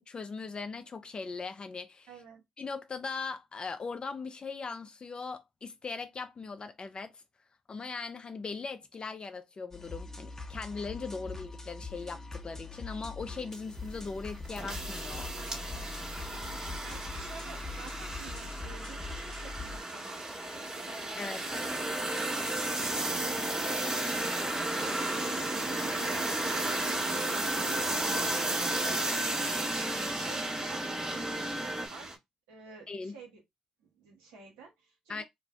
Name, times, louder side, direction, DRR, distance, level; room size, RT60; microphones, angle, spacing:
voice 1, 0.1-2.1 2.6-7.2 7.7-15.3 21.2-21.4 32.9-33.2 35.1-35.2, left 4 dB, 40° left, 0.4 m, -39 dB
voice 2, 2.1-2.4 15.3-29.1 30.1-32.1 32.5-33.4 33.8-35.2, right 5 dB, 80° right, 1.0 m, -51 dB
sound 1, 9.7-19.8, left 3 dB, 20° left, 0.8 m, -42 dB
sound 2, 13.5-32.2, right 2 dB, 30° right, 1.4 m, -35 dB
sound 3, 21.5-31.9, right 1 dB, 15° right, 0.7 m, -36 dB
2.5 x 2.1 x 3.3 m
hypercardioid pair, 45°, 2 cm